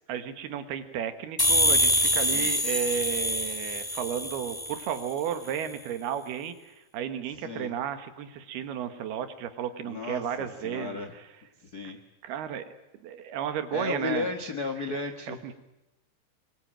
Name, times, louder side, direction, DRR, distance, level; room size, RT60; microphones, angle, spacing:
voice 1, 0.1-11.3 12.2-12.7 13.0-14.3 15.3-15.5, right 9 dB, 75° right, 9 dB, 3.5 m, -33 dB
sound 1, 1.4-5.0, left 1 dB, 15° left, 0.6 m, -25 dB
voice 2, 7.4-7.7 9.8-10.2 10.6-11.1 11.6-12.0 13.7-15.4, left 3 dB, 60° left, 6 dB, 1.0 m, -34 dB
26.0 x 22.5 x 9.0 m, 0.98 s
omnidirectional pair, 4.6 m